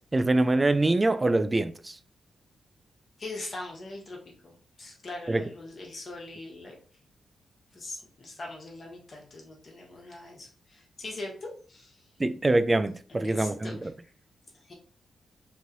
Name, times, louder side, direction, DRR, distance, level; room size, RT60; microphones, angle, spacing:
voice 1, 0.1-1.7 5.3-5.4 12.2-13.7, right 2 dB, 25° right, 0.3 m, -24 dB
voice 2, 3.2-6.7 7.7-12.0 13.1-13.9 14.7-14.8, left 2 dB, 50° left, 1.3 m, -41 dB
3.1 x 2.7 x 2.6 m
cardioid pair, 65°, 0 cm